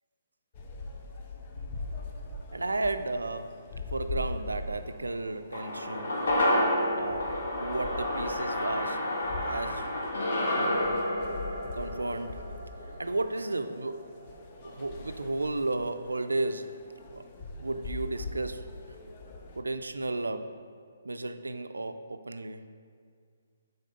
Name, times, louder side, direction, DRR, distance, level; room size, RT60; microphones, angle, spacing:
sound 1, 0.5-19.6, left 2 dB, 40° left, 0.8 m, -42 dB
voice 1, 2.5-6.4 7.0-9.1 9.3-9.9 10.4-10.9 11.7-12.4 13.0-14.1 14.6-16.8 17.1-17.2 17.6-18.7 19.5-20.6 21.0-22.6, right 2 dB, 85° right, 9 dB, 0.4 m, -34 dB
sound 2, 5.5-14.0 14.3-14.4, left 1 dB, 65° left, 1.4 m, -30 dB
6.6 x 4.2 x 5.2 m, 2.1 s
figure-of-eight pair, 135°, 0 cm